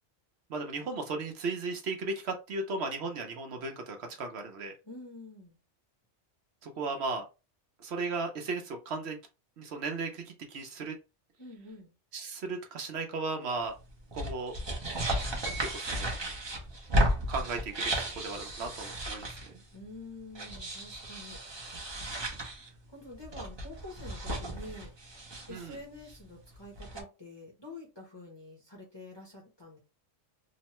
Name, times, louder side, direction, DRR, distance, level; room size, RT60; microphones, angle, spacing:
voice 1, 0.5-4.7 6.6-7.2 7.8-9.2 9.6-10.9 12.1-13.7 14.1-14.5 15.6-16.2 17.3-19.5 25.5-25.8, right 3 dB, 65° right, 4 dB, 0.9 m, -36 dB
voice 2, 4.8-5.6 11.4-11.9 19.7-21.4 22.9-24.9 25.5-29.8, left 2 dB, 25° left, -3 dB, 0.7 m, -47 dB
sound 1, 13.9-19.6 20.3-22.7 23.1-25.8 26.1-26.2 26.5-27.0, right 1 dB, 30° right, 0.6 m, -34 dB
Piano, 15.5-16.4, right 3 dB, 65° left, 1.2 m, -44 dB
3.0 x 2.1 x 2.9 m, 0.28 s
omnidirectional pair, 1.2 m